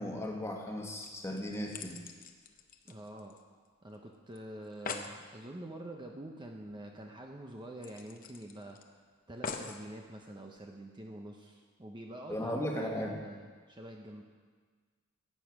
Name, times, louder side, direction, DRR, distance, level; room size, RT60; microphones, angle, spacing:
voice 1, 0.0-2.0 12.3-13.2, left 1 dB, 15° left, 1 dB, 1.5 m, -36 dB
sound 1, 1.0-3.7 3.9-4.0 4.3-4.4 4.6-5.2 6.7-6.8 7.1-7.2 7.8-8.8 9.4-9.8 10.6-10.7, left 5 dB, 40° left, 0.8 m, -43 dB
voice 2, 2.8-3.4 3.8-8.8 9.3-14.2, right 1 dB, 20° right, 1 dB, 0.8 m, -46 dB
14.5 x 8.6 x 6.0 m, 1.5 s
head